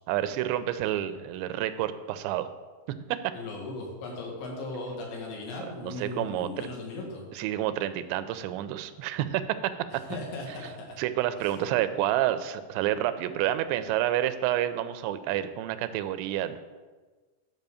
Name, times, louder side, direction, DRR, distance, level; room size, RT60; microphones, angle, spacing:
voice 1, 0.1-2.5 3.1-3.2 5.8-6.7 7.4-9.7 11.0-16.6, right 12 dB, 90° right, 11 dB, 2.9 m, -29 dB
voice 2, 3.3-7.2 9.9-11.0 11.4-11.5, left 2 dB, 85° left, -1 dB, 4.3 m, -38 dB
10.5 x 5.5 x 6.9 m, 1.3 s
omnidirectional pair, 5.0 m